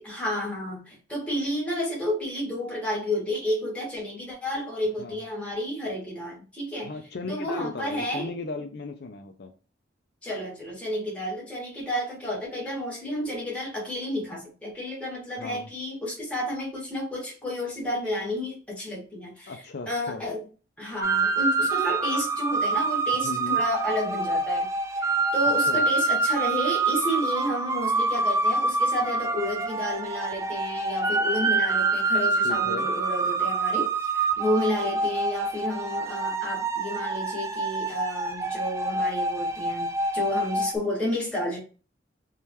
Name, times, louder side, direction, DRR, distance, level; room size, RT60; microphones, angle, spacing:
voice 1, 0.0-6.9 7.3-8.3 10.2-19.5 19.9-20.4 20.8-24.7 25.0-41.6, left 1 dB, 5° left, -5 dB, 1.9 m, -31 dB
voice 2, 6.8-9.5 15.4-15.7 19.5-20.2 23.2-23.6 25.6-25.8 32.4-32.9, left 3 dB, 65° left, 5 dB, 0.5 m, -36 dB
sound 1, 21.0-40.8, right 3 dB, 15° right, 0.4 m, -26 dB
3.7 x 3.1 x 2.9 m, 0.35 s
head